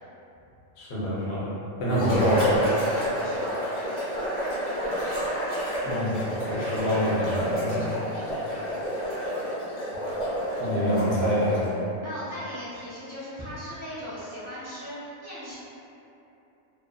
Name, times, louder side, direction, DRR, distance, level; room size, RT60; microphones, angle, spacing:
voice 1, 0.8-1.5 1.8-2.6 5.8-7.9 10.6-11.5, equal, 60° left, -7 dB, 0.9 m, -26 dB
sound 1, 1.9-11.8, equal, 30° left, 1.0 m, -29 dB
voice 2, 2.9-3.6 12.0-15.6, equal, 20° right, -11 dB, 0.5 m, -38 dB
2.5 x 2.5 x 2.2 m, 2.9 s
omnidirectional pair, 1.3 m